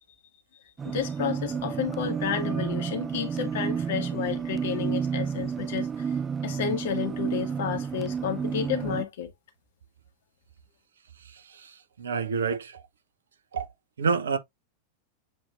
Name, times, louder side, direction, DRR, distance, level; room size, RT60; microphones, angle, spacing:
voice 1, 0.8-6.1 6.4-9.3, left 8 dB, 55° left, 1.4 m, -31 dB
sound 1, 0.8-9.0, right 6 dB, 20° right, 0.4 m, -31 dB
voice 2, 11.3-12.8 13.5-13.7 14.0-14.4, right 5 dB, 70° right, 0.9 m, -29 dB
7.5 x 2.9 x 2.4 m
figure-of-eight pair, 90°, 0 cm